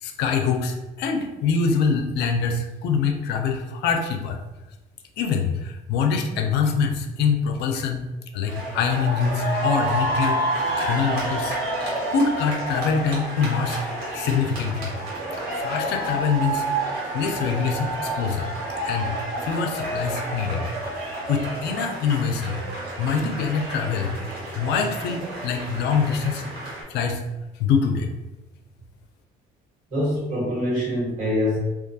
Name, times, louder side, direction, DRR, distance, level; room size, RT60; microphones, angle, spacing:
voice 1, 0.0-4.4 5.2-8.0 8.3-10.4 10.8-11.6 12.1-14.9 15.5-18.5 18.8-19.1 19.4-20.7 21.3-24.2 24.5-26.4 26.9-27.2 27.5-28.1, left 5 dB, 80° left, 4 dB, 0.4 m, -24 dB
sound 1, 8.5-26.8, right 1 dB, 65° right, 1.2 m, -29 dB
voice 2, 29.9-31.6, left 1 dB, 50° right, -5 dB, 1.3 m, -24 dB
2.3 x 2.3 x 2.6 m, 1.0 s
cardioid pair, 110°, 17 cm